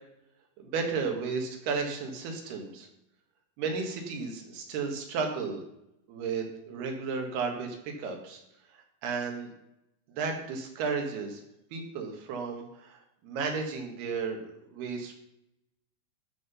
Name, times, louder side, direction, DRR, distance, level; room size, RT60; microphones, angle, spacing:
voice 1, 0.6-2.9 3.6-5.6 6.1-8.4 9.0-9.5 10.2-11.4 11.7-15.1, right 5 dB, 85° right, 3 dB, 3.6 m, -33 dB
12.0 x 5.9 x 5.5 m, 0.81 s
omnidirectional pair, 4.4 m